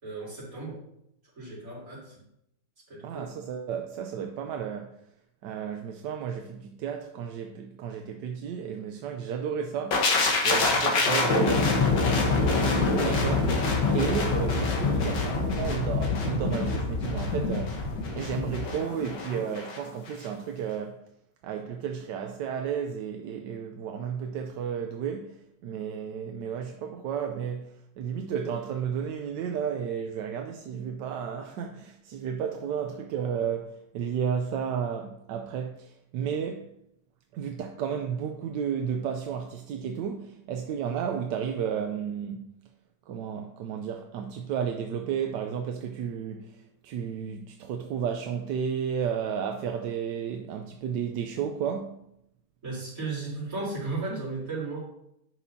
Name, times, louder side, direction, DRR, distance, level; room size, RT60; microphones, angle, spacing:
voice 1, 0.0-0.8 1.4-2.2 2.9-3.3 52.6-54.8, right 3 dB, 50° right, 4.1 m, -35 dB
voice 2, 3.0-5.0 5.4-13.6 13.9-17.8 18.1-21.0 21.4-36.7 37.3-42.5 43.1-52.0, right 7 dB, 85° right, 1.3 m, -33 dB
sound 1, 9.9-19.8 20.1-20.3, left 3 dB, 85° left, 1.9 m, -25 dB
10.5 x 6.1 x 2.7 m
omnidirectional pair, 1.9 m